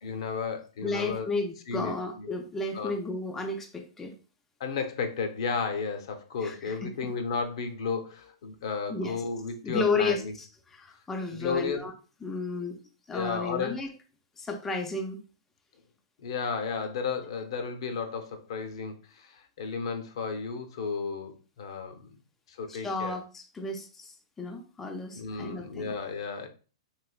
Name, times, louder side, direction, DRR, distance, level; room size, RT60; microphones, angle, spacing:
voice 1, 0.0-1.3 1.7-2.3 2.7-2.9 4.6-10.3 11.3-11.9 13.1-13.8 16.2-22.1 22.5-23.2 25.1-26.5, left 5 dB, 65° left, 7 dB, 0.6 m, -33 dB
voice 2, 0.8-4.1 6.4-7.1 8.9-9.1 9.6-10.2 10.7-11.9 12.2-12.8 13.1-13.9 14.4-15.2 22.7-25.9, left 3 dB, 10° left, 3 dB, 0.3 m, -33 dB
3.1 x 2.9 x 2.3 m, 0.36 s
hypercardioid pair, 145°, 3 cm